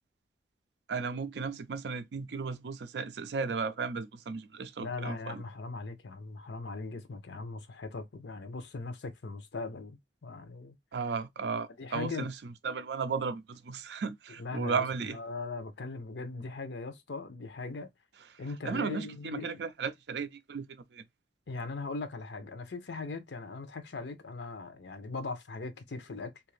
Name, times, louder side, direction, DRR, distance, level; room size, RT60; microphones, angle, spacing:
voice 1, 0.9-5.4 10.9-15.2 18.3-21.0, right 5 dB, 70° right, 0.4 m, -35 dB
voice 2, 4.8-10.8 11.8-12.3 14.4-17.9 18.4-19.6 21.5-26.3, left 3 dB, 75° left, 0.6 m, -39 dB
2.8 x 2.5 x 3.1 m
head